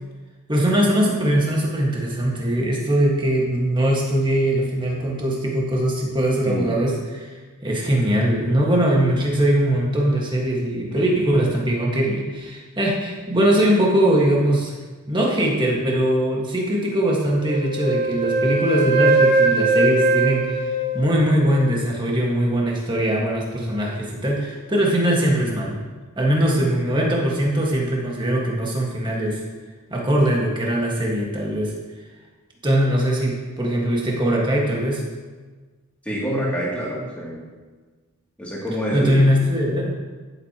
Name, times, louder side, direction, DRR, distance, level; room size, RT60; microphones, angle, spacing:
voice 1, 0.5-7.3 7.6-14.7 15.1-20.6 20.9-25.8 26.2-29.4 29.9-31.8 32.6-35.0 38.9-40.0, right 1 dB, 20° right, -2 dB, 1.7 m, -21 dB
Wind instrument woodwind instrument, 17.4-21.6, right 3 dB, 50° right, 2.9 m, -20 dB
voice 2, 36.0-37.4 38.4-39.4, equal, 5° left, -7 dB, 2.7 m, -26 dB
14.5 x 7.8 x 3.0 m, 1.4 s
head